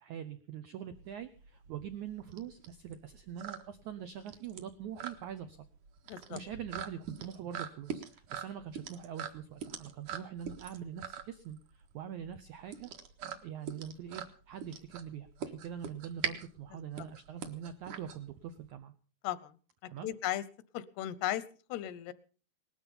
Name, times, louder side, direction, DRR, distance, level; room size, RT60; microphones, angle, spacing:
voice 1, 0.0-5.7 6.3-12.9 13.4-18.9 19.9-20.1, right 9 dB, 90° right, 10 dB, 1.6 m, -43 dB
sound 1, 0.9-18.7, right 8 dB, 60° right, 2.6 m, -43 dB
voice 2, 6.1-6.4 19.2-19.5 19.8-20.4 20.7-21.4 21.7-22.1, left 13 dB, 80° left, 17 dB, 3.0 m, -36 dB
19.5 x 13.0 x 5.4 m, 0.40 s
omnidirectional pair, 4.7 m